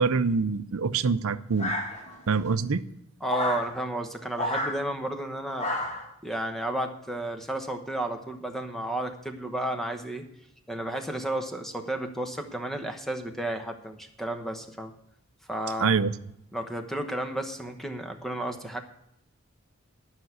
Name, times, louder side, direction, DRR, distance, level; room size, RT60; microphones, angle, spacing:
voice 1, 0.0-1.7 2.3-2.8 15.8-16.1, right 5 dB, 85° right, 0.6 m, -25 dB
sound 1, 1.6-2.3 3.3-3.7 4.3-4.8 5.6-6.1, left 1 dB, 30° left, 2.1 m, -30 dB
voice 2, 3.2-5.7 6.2-10.3 10.7-14.9 15.5-15.9 16.5-18.8, right 1 dB, ahead, 1.0 m, -32 dB
12.0 x 6.0 x 8.0 m
head